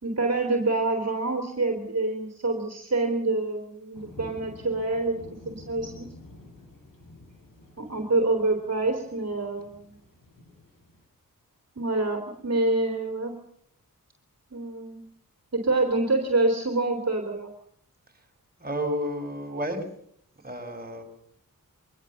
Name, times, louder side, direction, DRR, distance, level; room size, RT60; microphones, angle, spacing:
voice 1, 0.0-5.2 5.4-6.1 7.8-9.9 11.8-13.3 14.5-15.0 15.5-17.5, right 2 dB, 50° right, 3 dB, 3.3 m, -26 dB
sound 1, 3.9-11.0, left 1 dB, 70° left, 7.6 m, -49 dB
voice 2, 18.6-19.8 20.4-21.0, equal, 25° right, 2 dB, 5.6 m, -31 dB
24.0 x 20.0 x 7.1 m, 0.69 s
cardioid pair, 60°, 34 cm